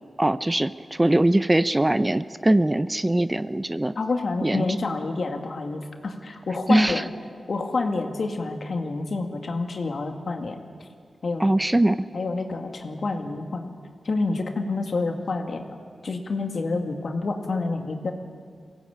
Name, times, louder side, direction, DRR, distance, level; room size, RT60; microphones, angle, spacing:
voice 1, 0.2-4.0 4.4-4.7 6.7-7.0 11.4-12.1, right 1 dB, 20° right, 13 dB, 0.7 m, -21 dB
voice 2, 4.0-7.0 7.5-10.6 11.2-11.5 12.1-13.7 14.0-15.6 16.0-18.1, left 3 dB, 65° left, 3 dB, 2.2 m, -28 dB
22.5 x 16.5 x 8.7 m, 2.1 s
cardioid pair, 40°, 0 cm